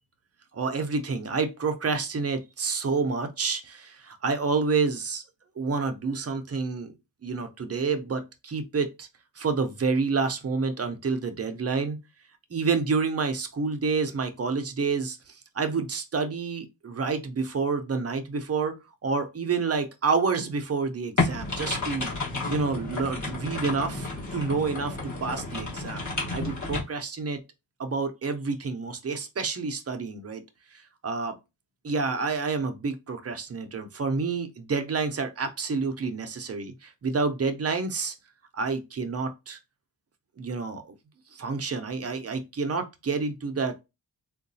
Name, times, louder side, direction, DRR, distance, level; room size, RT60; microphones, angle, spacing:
voice 1, 0.5-5.2 5.6-6.9 7.2-9.1 9.4-12.0 12.5-22.1 22.5-27.4 27.8-30.4 30.7-31.4 31.8-38.1 38.5-39.6 40.4-40.9 41.3-43.7, right 4 dB, 35° right, 0.4 m, -29 dB
sound 1, 21.2-26.8, left 3 dB, 40° left, 1.3 m, -31 dB
3.7 x 2.3 x 2.6 m
wide cardioid pair, 180°, 44 cm